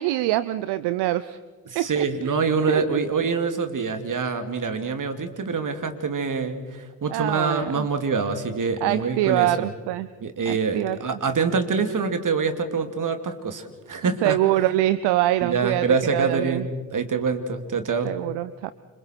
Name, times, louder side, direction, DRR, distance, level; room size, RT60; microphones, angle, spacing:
voice 1, 0.0-1.4 1.7-2.3 2.7-3.0 7.1-7.9 8.8-10.1 10.5-11.0 14.2-15.9 16.1-16.7 18.0-18.7, right 15 dB, 75° right, 15 dB, 0.7 m, -24 dB
voice 2, 1.7-9.7 10.2-14.4 15.4-18.2, right 5 dB, 50° right, 7 dB, 2.7 m, -25 dB
29.0 x 26.5 x 4.6 m, 1.3 s
hypercardioid pair, 40°, 40 cm